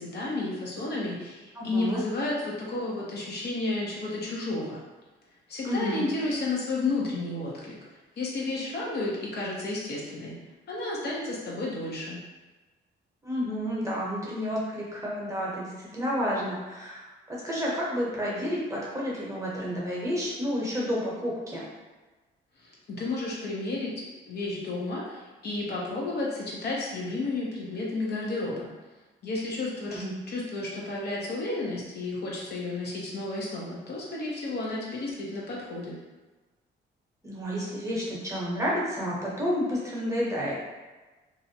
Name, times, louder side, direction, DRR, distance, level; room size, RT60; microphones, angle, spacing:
voice 1, 0.0-4.8 5.5-7.8 8.2-10.3 10.7-12.2 22.6-28.7 29.2-36.0, left 2 dB, 55° left, -4 dB, 0.7 m, -32 dB
voice 2, 1.5-2.0 5.6-6.0 13.2-21.6 29.9-30.1 37.2-40.5, equal, 15° right, -6 dB, 0.8 m, -30 dB
2.5 x 2.1 x 2.7 m, 1.2 s
cardioid pair, 90°, 20 cm